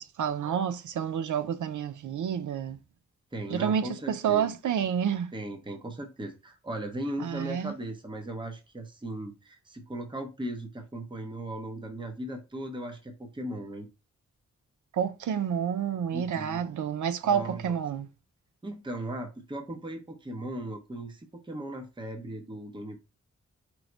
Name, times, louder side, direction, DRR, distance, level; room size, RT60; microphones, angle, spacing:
voice 1, 0.0-2.8 3.5-5.3 7.2-7.7 14.9-18.1, right 8 dB, 85° right, 0.5 m, -29 dB
voice 2, 3.3-4.5 5.3-13.9 16.1-16.6 17.2-17.8 18.6-23.0, right 1 dB, 15° right, 0.7 m, -37 dB
4.6 x 2.1 x 3.8 m
wide cardioid pair, 75°, 30 cm